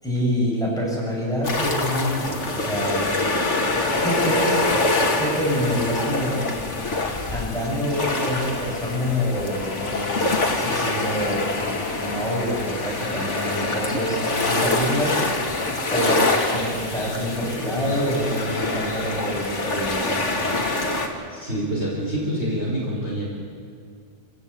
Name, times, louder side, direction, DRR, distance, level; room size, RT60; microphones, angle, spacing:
voice 1, 0.0-3.1 4.0-4.6 5.2-6.5 7.3-11.4 11.9-15.2 15.9-20.2, equal, ahead, -4 dB, 7.7 m, -26 dB
sound 1, 1.4-21.1, left 2 dB, 45° left, 2.4 m, -25 dB
voice 2, 21.3-23.2, right 1 dB, 40° right, -4 dB, 5.5 m, -26 dB
28.0 x 16.5 x 8.6 m, 2.2 s
omnidirectional pair, 1.8 m